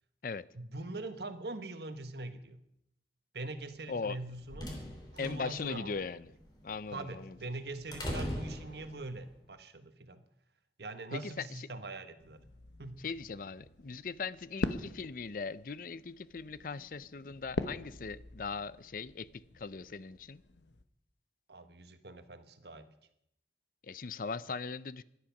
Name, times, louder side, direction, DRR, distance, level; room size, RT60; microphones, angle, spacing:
voice 1, 0.5-2.6 3.3-4.7 5.1-5.9 6.9-10.2 10.8-12.4 12.8-13.0 21.5-22.9, right 2 dB, 70° right, 9 dB, 1.3 m, -43 dB
voice 2, 3.9-4.2 5.2-6.3 6.6-7.4 11.1-11.7 13.0-20.4 23.8-25.0, left 4 dB, 50° left, 17 dB, 0.5 m, -39 dB
sound 1, 4.0-9.3, equal, 25° left, 3.3 m, -42 dB
sound 2, 12.2-20.8, left 2 dB, 80° left, 1.0 m, -43 dB
17.0 x 11.5 x 5.9 m, 0.77 s
head